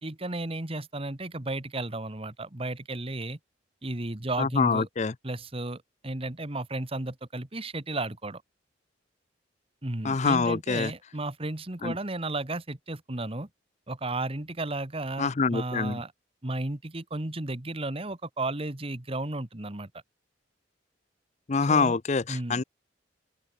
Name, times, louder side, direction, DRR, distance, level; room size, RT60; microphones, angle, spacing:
voice 1, 0.0-3.4 3.8-4.9 5.2-8.4 9.8-13.5 13.9-16.1 16.4-19.9 21.7-22.0 22.3-22.6, right 2 dB, 30° right, 1.5 m, -34 dB
voice 2, 4.4-5.1 10.0-10.9 11.8-11.9 15.2-16.0 21.5-22.6, left 4 dB, 35° left, 0.6 m, -25 dB
open air
head